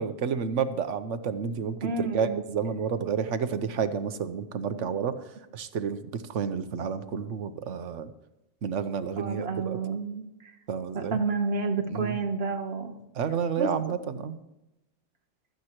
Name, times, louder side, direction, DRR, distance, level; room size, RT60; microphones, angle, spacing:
voice 1, 0.0-5.1 5.5-8.1 8.6-9.8 10.7-11.2 11.9-12.2 13.1-14.4, right 6 dB, 85° right, 11 dB, 1.2 m, -30 dB
voice 2, 1.8-2.4 4.8-4.9 9.2-10.5 10.9-12.9 13.6-13.7, right 4 dB, 55° right, 5 dB, 1.4 m, -30 dB
16.0 x 13.0 x 3.0 m, 0.90 s
omnidirectional pair, 1.2 m